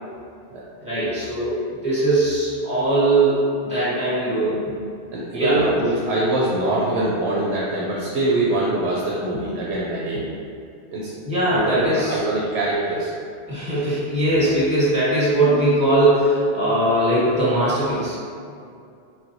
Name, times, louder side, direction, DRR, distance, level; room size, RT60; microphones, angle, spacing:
voice 1, 0.8-4.6 5.3-5.6 11.3-12.2 13.5-18.2, right 1 dB, 5° right, -11 dB, 1.1 m, -20 dB
voice 2, 5.1-10.3 10.9-11.1 11.4-13.1 13.5-13.6, right 2 dB, 85° right, -5 dB, 0.9 m, -23 dB
4.2 x 2.2 x 2.6 m, 2.4 s
omnidirectional pair, 1.1 m